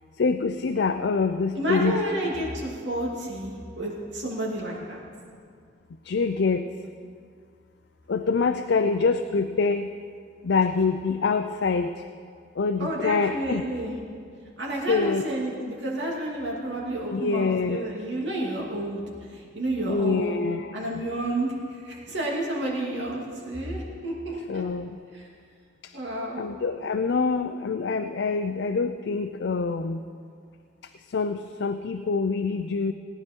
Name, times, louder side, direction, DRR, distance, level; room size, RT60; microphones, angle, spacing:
voice 1, 0.2-2.0 6.1-6.7 8.1-9.9 10.4-11.9 12.6-13.6 14.9-15.2 17.1-17.9 19.9-20.7 24.5-25.0 26.4-30.0 31.1-32.9, left 4 dB, 65° left, 8 dB, 0.5 m, -25 dB
voice 2, 1.5-5.0 12.8-14.0 14.6-19.0 19.3-20.4 20.7-24.6 25.1-25.3 25.9-26.4, right 1 dB, 75° right, -3 dB, 2.7 m, -30 dB
18.5 x 10.5 x 4.5 m, 2.1 s
head